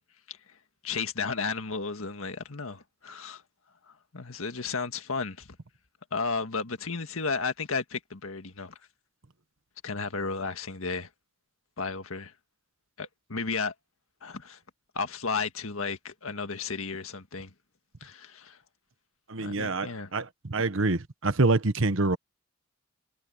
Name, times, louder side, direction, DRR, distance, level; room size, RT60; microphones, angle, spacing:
voice 1, 0.8-3.4 3.9-5.6 6.1-8.7 9.8-11.1 11.8-12.3 13.0-13.7 14.2-14.6 15.0-17.5 18.0-18.6 19.4-20.1, left 4 dB, 80° left, 1.8 m, -33 dB
voice 2, 19.3-22.2, right 3 dB, 70° right, 1.2 m, -26 dB
head